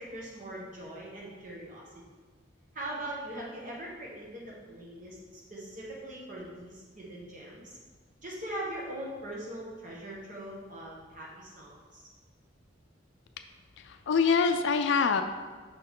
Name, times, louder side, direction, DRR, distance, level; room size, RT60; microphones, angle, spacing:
voice 1, 0.0-1.8 2.7-7.8 8.2-12.1, right 1 dB, 40° right, -4 dB, 1.4 m, -41 dB
voice 2, 13.8-15.2, left 5 dB, 70° left, 8 dB, 0.4 m, -25 dB
5.8 x 4.4 x 3.7 m, 1.4 s
head